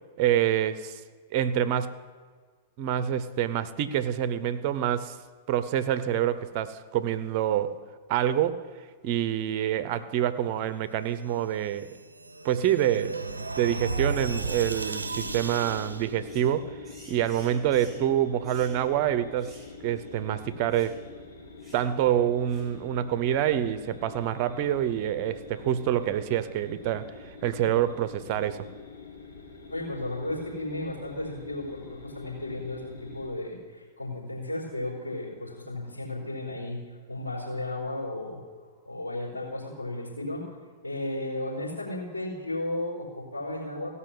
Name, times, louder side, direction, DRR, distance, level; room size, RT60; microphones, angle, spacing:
voice 1, 0.2-1.0 1.3-2.0 2.8-5.2 5.5-7.7 8.1-8.6 9.0-11.9 12.4-13.2 13.6-16.7 17.1-19.5 19.8-21.0 21.7-27.1 27.4-28.7, right 11 dB, 45° right, 13 dB, 0.8 m, -26 dB
sound 1, 11.6-16.1, right 3 dB, 85° right, 0.6 m, -34 dB
sound 2, 15.0-33.3, left 4 dB, 70° left, 2.8 m, -46 dB
sound 3, 16.2-16.5 16.8-18.1 18.4-18.8 19.4-19.7 20.0-20.1 20.7-21.0 21.6-21.9 22.5-22.7, right 1 dB, 5° right, 4.2 m, -52 dB
voice 2, 29.7-36.8 37.1-38.4 38.8-40.5 40.8-43.9, left 1 dB, 85° left, -3 dB, 4.4 m, -34 dB
16.5 x 5.7 x 7.8 m, 1.5 s
figure-of-eight pair, 100°, 0 cm